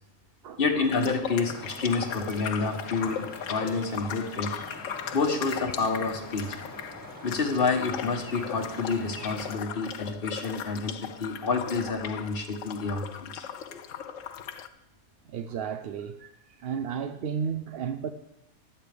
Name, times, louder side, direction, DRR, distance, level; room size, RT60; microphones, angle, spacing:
voice 1, 0.6-4.5 5.1-6.6 7.2-13.8, left 4 dB, 45° left, 1.2 m, -29 dB
sound 1, 0.8-14.7, left 9 dB, 65° left, 0.9 m, -38 dB
sound 2, 1.4-9.6, left 1 dB, 15° left, 1.5 m, -43 dB
voice 2, 15.3-16.3 16.6-18.1, right 7 dB, 65° right, 0.6 m, -33 dB
15.0 x 11.0 x 3.4 m
omnidirectional pair, 1.5 m